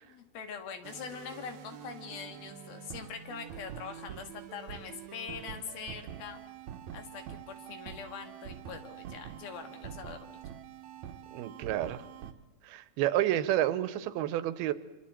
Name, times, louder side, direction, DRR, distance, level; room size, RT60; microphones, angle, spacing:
voice 1, 0.1-6.4 6.9-10.4, left 6 dB, 80° left, 6 dB, 3.8 m, -43 dB
sound 1, 0.8-12.3, right 9 dB, 70° right, 1.8 m, -46 dB
voice 2, 11.3-12.0 12.6-14.7, right 13 dB, 90° right, 14 dB, 2.8 m, -30 dB
26.5 x 25.5 x 4.4 m, 1.1 s
omnidirectional pair, 4.3 m